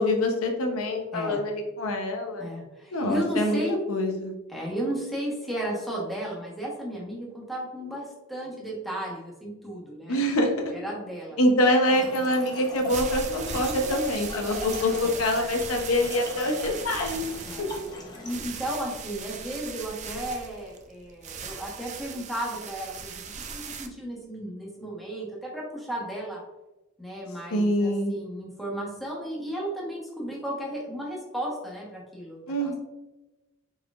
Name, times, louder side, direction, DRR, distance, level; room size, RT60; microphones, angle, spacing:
voice 1, 0.0-2.5 2.9-4.3 10.1-10.5 11.4-17.2 27.5-28.1 32.5-32.8, left 1 dB, 90° left, 3 dB, 0.8 m, -25 dB
voice 2, 1.1-1.4 2.4-3.7 4.5-10.2 10.7-11.4 14.8-15.2 17.4-17.7 18.2-23.1 23.5-26.4 27.0-32.8, right 1 dB, ahead, -4 dB, 1.2 m, -34 dB
Trickle dribble / Fill (with liquid), 11.8-18.5, left 1 dB, 20° left, 0.7 m, -39 dB
sound 1, 12.9-23.9, right 5 dB, 35° right, 0.4 m, -38 dB
4.8 x 4.1 x 2.4 m, 1.0 s
head